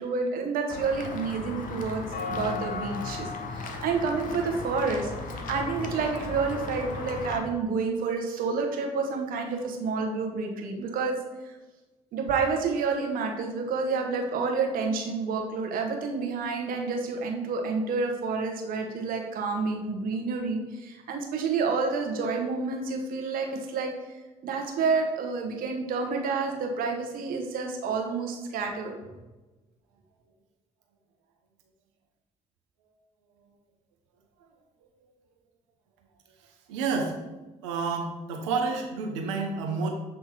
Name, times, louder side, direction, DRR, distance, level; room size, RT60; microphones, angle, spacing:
voice 1, 0.0-2.0 2.3-11.2 11.4-11.5 12.1-23.9 24.4-29.0, right 4 dB, 70° right, 2 dB, 1.3 m, -29 dB
Walk footsteps / Bell, 0.7-7.4, left 3 dB, 60° left, 1.0 m, -36 dB
voice 2, 36.7-37.2 37.6-39.9, right 4 dB, 90° right, 2 dB, 0.9 m, -29 dB
7.6 x 3.6 x 4.5 m, 1.1 s
hypercardioid pair, 55°, 15 cm